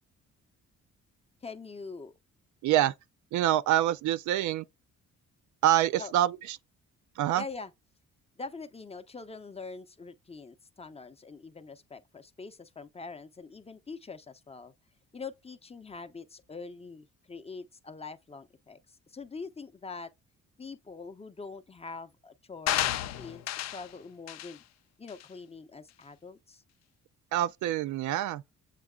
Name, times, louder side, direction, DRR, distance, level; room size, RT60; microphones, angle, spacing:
voice 1, 1.4-2.1 6.0-6.1 7.3-7.7 8.4-14.7 15.1-20.1 20.6-24.6 25.0-26.6, left 4 dB, 20° left, 0.6 m, -44 dB
voice 2, 2.6-2.9 3.3-4.6 5.6-6.6 7.2-7.4 27.3-28.4, right 13 dB, 75° right, 0.4 m, -26 dB
sound 1, 22.7-23.9 24.3-24.5 25.1-25.2, left 13 dB, 60° left, 0.5 m, -31 dB
7.4 x 2.9 x 2.2 m
cardioid pair, 90°, 30 cm